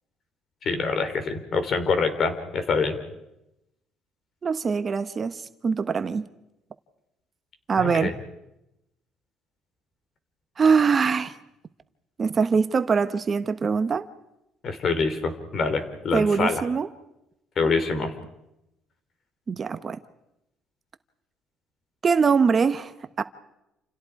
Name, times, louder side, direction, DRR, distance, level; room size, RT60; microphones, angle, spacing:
voice 1, 0.7-3.0 7.8-8.1 14.6-16.6 17.6-18.1, left 4 dB, 40° left, 8 dB, 3.8 m, -25 dB
voice 2, 4.4-6.2 7.7-8.1 10.6-11.3 12.2-14.1 16.1-16.9 19.5-20.0 22.0-23.2, right 5 dB, 30° right, 11 dB, 0.9 m, -23 dB
29.0 x 28.5 x 4.8 m, 0.87 s
cardioid pair, 135°, 0 cm